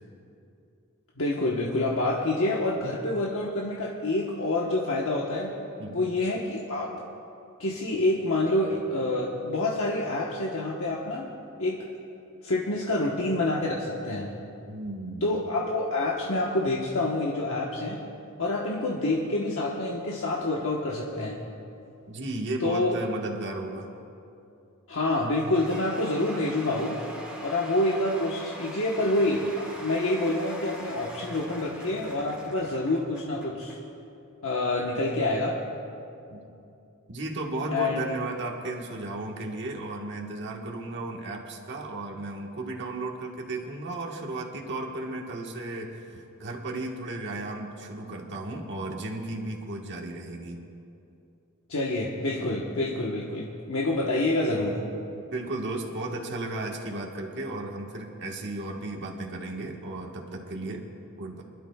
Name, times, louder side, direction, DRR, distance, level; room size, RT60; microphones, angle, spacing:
voice 1, 1.2-5.5 5.9-6.9 7.6-11.3 11.6-11.8 12.4-14.3 15.2-18.0 18.4-21.4 22.6-23.0 24.9-27.0 27.4-33.8 34.4-35.6 37.7-38.0 51.7-54.8, left 2 dB, 65° left, -3 dB, 1.2 m, -27 dB
voice 2, 14.7-15.3 22.1-23.9 36.3-36.4 37.1-50.6 55.1-60.8 61.2-61.4, right 2 dB, 55° right, -1 dB, 1.5 m, -34 dB
Cheering / Applause / Crowd, 25.1-33.8, equal, 5° right, 2.3 m, -42 dB
28.0 x 12.0 x 2.3 m, 2.7 s
head